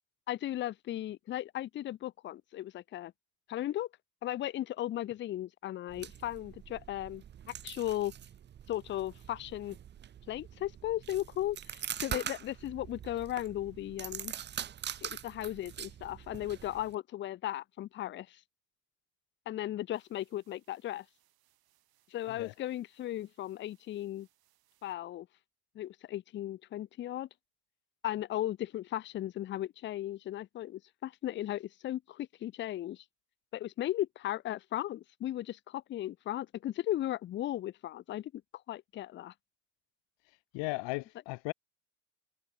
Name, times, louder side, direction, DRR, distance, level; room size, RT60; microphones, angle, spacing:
voice 1, 0.3-3.1 3.5-3.9 4.2-8.1 8.7-9.8 10.3-14.3 15.0-18.4 19.5-21.1 22.1-24.3 24.8-25.3 25.8-27.3 28.0-33.0 33.5-38.4 38.7-39.3, left 13 dB, 30° left, 0.4 m, -36 dB
sound 1, 5.9-17.0, right 10 dB, 25° right, 0.6 m, -44 dB
sound 2, 19.9-24.9, right 15 dB, 55° right, 6.7 m, -74 dB
voice 2, 40.5-41.5, left 27 dB, 75° left, 0.7 m, -36 dB
cardioid pair, 160°, 44 cm